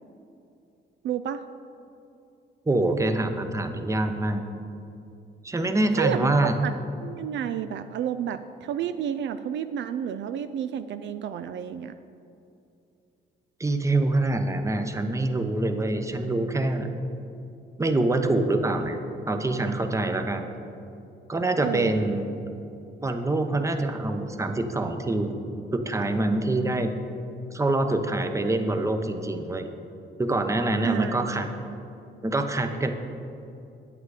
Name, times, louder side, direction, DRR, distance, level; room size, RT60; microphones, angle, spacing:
voice 1, 1.0-1.4 6.0-6.7 7.0-11.9 21.6-22.0 30.8-31.6, right 9 dB, 70° right, 10 dB, 0.4 m, -31 dB
voice 2, 2.7-4.4 5.4-6.6 13.6-16.9 17.8-19.0 19.3-20.5 21.3-22.4 23.0-25.4 25.7-26.9 27.5-29.6 30.2-31.5 32.2-32.9, right 2 dB, 15° right, 6 dB, 0.8 m, -25 dB
8.9 x 8.1 x 4.9 m, 2.6 s
cardioid pair, 90°, 20 cm